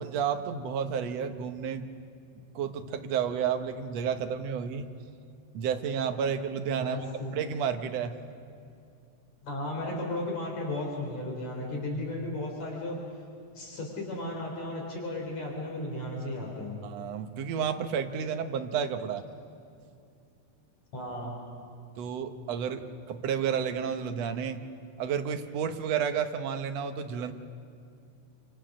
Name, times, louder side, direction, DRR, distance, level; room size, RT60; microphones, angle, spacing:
voice 1, 0.0-1.9 2.6-4.9 5.5-7.0 7.3-8.2 16.8-19.2 22.0-24.6 25.0-27.3, right 7 dB, 65° right, 7 dB, 2.1 m, -31 dB
voice 2, 6.8-7.3 9.4-13.0 13.5-16.8 20.9-21.4, left 1 dB, 65° left, 0 dB, 4.7 m, -35 dB
28.0 x 25.5 x 6.4 m, 2.5 s
omnidirectional pair, 3.4 m